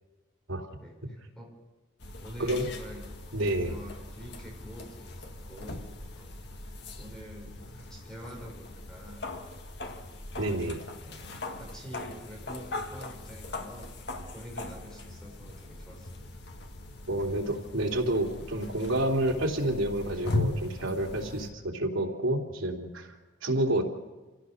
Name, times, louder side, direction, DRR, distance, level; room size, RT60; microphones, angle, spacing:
voice 1, 0.8-1.5 2.2-3.1 3.6-5.9 6.2-6.3 7.0-9.3 10.3-10.7 11.0-16.4, equal, 5° left, -1 dB, 5.3 m, -47 dB
sound 1, 2.0-21.5, left 2 dB, 55° left, 1.9 m, -39 dB
voice 2, 3.3-3.8 10.4-10.8 17.1-23.1 23.4-23.8, right 1 dB, 85° right, 1 dB, 3.3 m, -29 dB
26.5 x 16.5 x 6.6 m, 1.2 s
head